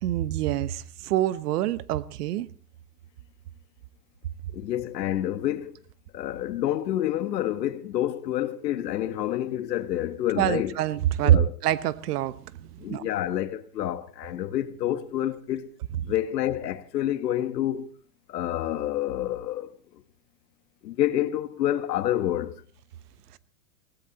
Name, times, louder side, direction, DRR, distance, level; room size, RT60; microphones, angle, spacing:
voice 1, 0.0-2.5 10.4-13.0 16.0-16.1, right 12 dB, 70° right, 1.2 m, -25 dB
voice 2, 4.5-5.8 6.1-10.8 11.2-11.5 12.8-15.7 16.1-17.9 18.3-19.7 20.8-22.6, left 12 dB, 90° left, 1.6 m, -28 dB
18.0 x 16.5 x 4.2 m
supercardioid pair, 145°, 48 cm